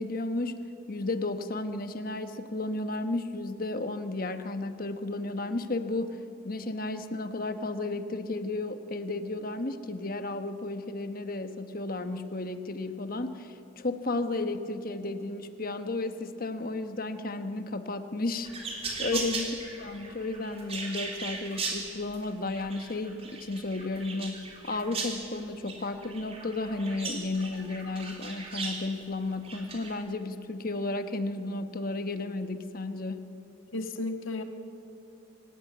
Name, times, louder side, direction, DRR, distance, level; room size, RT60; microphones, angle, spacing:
voice 1, 0.0-6.2 6.4-19.5 19.8-33.2, left 2 dB, 45° left, 8 dB, 1.2 m, -33 dB
sound 1, 18.4-28.8 29.4-29.9, right 4 dB, 30° right, 3.7 m, -38 dB
voice 2, 33.7-34.4, left 2 dB, 80° left, 6 dB, 1.8 m, -33 dB
27.0 x 17.0 x 9.4 m, 2.9 s
head